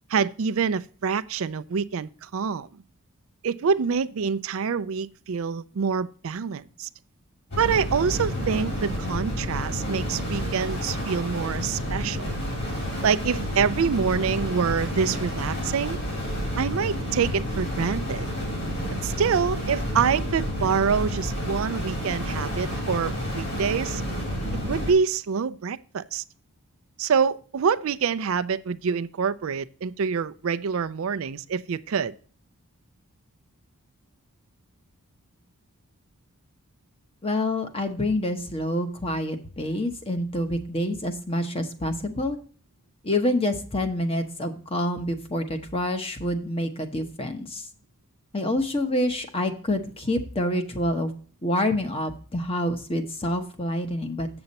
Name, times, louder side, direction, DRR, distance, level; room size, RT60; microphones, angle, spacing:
voice 1, 0.1-2.7 3.4-6.9 7.6-12.2 13.0-16.0 16.6-18.3 19.0-24.0 24.7-26.2 27.0-32.1, right 6 dB, 70° right, 0.4 m, -26 dB
sound 1, 7.5-24.9, equal, 50° left, 4.0 m, -30 dB
voice 2, 37.2-42.4 43.0-47.6 48.3-51.1 51.4-54.3, left 1 dB, 25° left, 0.9 m, -27 dB
7.8 x 7.0 x 4.1 m
head